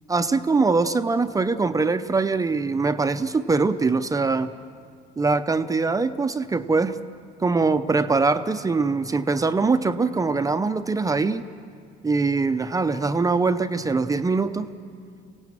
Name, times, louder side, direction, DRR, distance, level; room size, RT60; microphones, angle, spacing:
voice 1, 0.1-4.5 5.2-7.0 7.4-11.4 12.0-14.7, right 4 dB, 20° right, 10 dB, 0.7 m, -22 dB
25.0 x 17.5 x 7.4 m, 2.2 s
cardioid pair, 95°, 17 cm